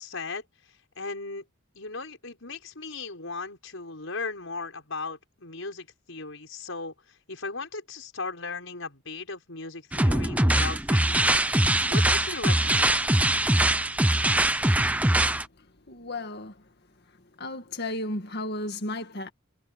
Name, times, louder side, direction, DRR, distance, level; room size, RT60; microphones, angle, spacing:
voice 1, 0.0-1.4 1.8-11.4 11.9-13.0, left 3 dB, 70° left, 5.6 m, -37 dB
sound 1, 9.9-15.4, right 1 dB, 5° right, 0.8 m, -22 dB
voice 2, 15.6-16.7 17.4-19.3, left 1 dB, 50° left, 2.1 m, -34 dB
head